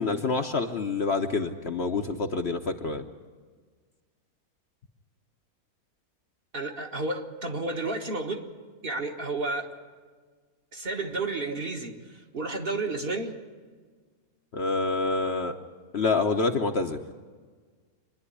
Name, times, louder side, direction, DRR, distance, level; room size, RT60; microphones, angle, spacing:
voice 1, 0.0-3.0 14.5-15.5 15.9-17.0, left 4 dB, 50° left, 5 dB, 0.9 m, -27 dB
voice 2, 6.5-8.4 8.8-9.7 10.7-13.4, right 3 dB, 40° right, 3 dB, 1.5 m, -31 dB
25.0 x 11.0 x 9.8 m, 1.5 s
omnidirectional pair, 1.6 m